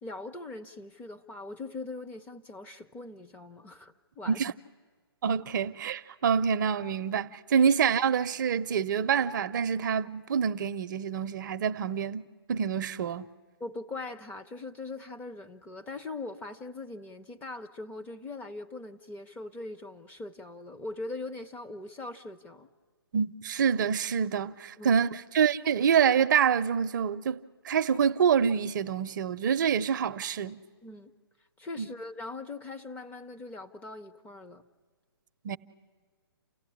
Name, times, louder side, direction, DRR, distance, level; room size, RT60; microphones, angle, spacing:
voice 1, 0.0-4.4 13.6-22.7 24.8-25.0 30.8-31.1 31.6-34.6, left 2 dB, 10° left, 0.6 m, -41 dB
voice 2, 5.2-13.3 23.1-27.4 27.6-30.6 31.8-31.9 35.4-35.6, right 7 dB, 50° right, 0.6 m, -26 dB
29.0 x 15.5 x 9.9 m
hypercardioid pair, 140°, 13 cm